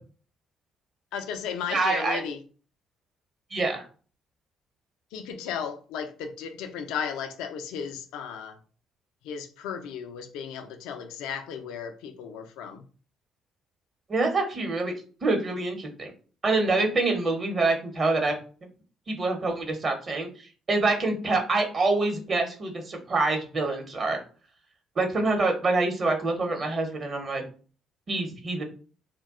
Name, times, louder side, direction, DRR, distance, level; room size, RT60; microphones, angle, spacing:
voice 1, 1.1-2.4 5.1-8.6 9.2-12.8, left 7 dB, 75° left, 0.3 m, -35 dB
voice 2, 1.7-2.2 3.5-3.8 14.1-14.9 15.2-16.1 16.4-18.4 19.1-24.2 25.0-27.4 28.1-28.6, right 3 dB, 45° right, 0.8 m, -26 dB
2.3 x 2.1 x 3.5 m
hypercardioid pair, 50°, 0 cm